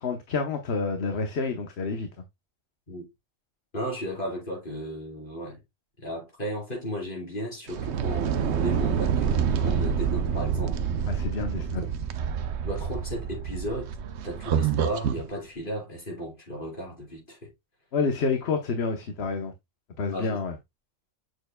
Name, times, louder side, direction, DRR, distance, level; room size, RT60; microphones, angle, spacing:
voice 1, 0.0-2.1 11.1-11.8 17.9-19.5 20.0-20.6, left 4 dB, 55° left, 1.1 m, -28 dB
voice 2, 3.7-5.6 6.0-10.9 11.7-11.9 12.6-14.0 14.2-17.5 20.1-20.4, equal, 35° left, 5.0 m, -35 dB
sound 1, 7.7-15.3, right 7 dB, 60° right, 0.9 m, -27 dB
7.8 x 6.7 x 2.2 m
omnidirectional pair, 1.4 m